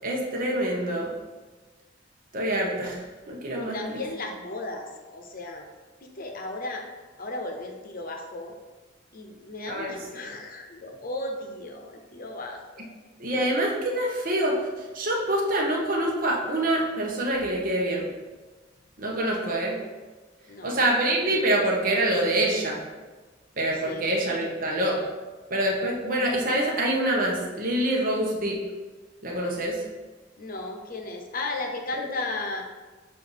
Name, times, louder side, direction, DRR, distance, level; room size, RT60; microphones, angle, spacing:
voice 1, 0.0-1.1 2.3-4.0 9.7-10.0 13.2-14.6 14.9-18.1 19.0-19.8 20.6-22.8 23.6-25.0 25.5-28.6 29.2-29.8, right 1 dB, 50° right, -1 dB, 1.0 m, -26 dB
voice 2, 3.6-5.7 6.0-6.8 7.2-8.5 9.1-12.9 19.4-19.5 20.5-20.8 23.7-24.0 30.4-32.6, left 2 dB, 50° left, 3 dB, 0.8 m, -35 dB
6.5 x 2.6 x 5.5 m, 1.3 s
head